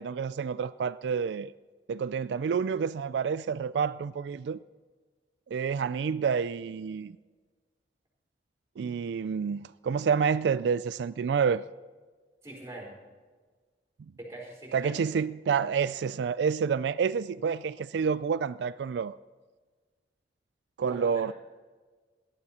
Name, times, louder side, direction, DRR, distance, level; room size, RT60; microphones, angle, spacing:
voice 1, 0.0-1.5 1.9-4.6 5.5-7.2 8.8-11.6 14.7-19.2 20.8-21.3, right 6 dB, 85° right, 0.3 m, -28 dB
voice 2, 12.4-12.9 14.2-15.0 20.9-21.0, right 1 dB, 15° right, 4.1 m, -42 dB
18.0 x 12.0 x 4.3 m
head